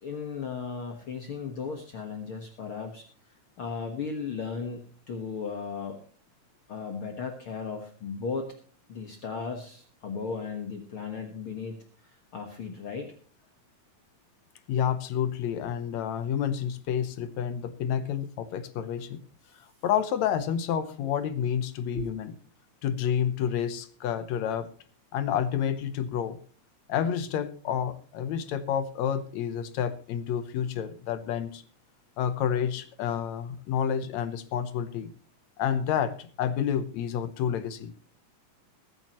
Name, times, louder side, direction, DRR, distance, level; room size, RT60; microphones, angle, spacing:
voice 1, 0.0-6.0 6.7-8.5 8.9-11.8 12.0-13.1 21.9-22.1, left 5 dB, 50° left, 3 dB, 2.0 m, -36 dB
voice 2, 14.7-19.2 19.5-22.3 22.8-24.7 25.1-26.4 26.9-31.6 32.2-35.1 35.6-37.9, left 8 dB, 70° left, 12 dB, 2.0 m, -29 dB
22.0 x 9.0 x 3.0 m, 0.43 s
omnidirectional pair, 3.6 m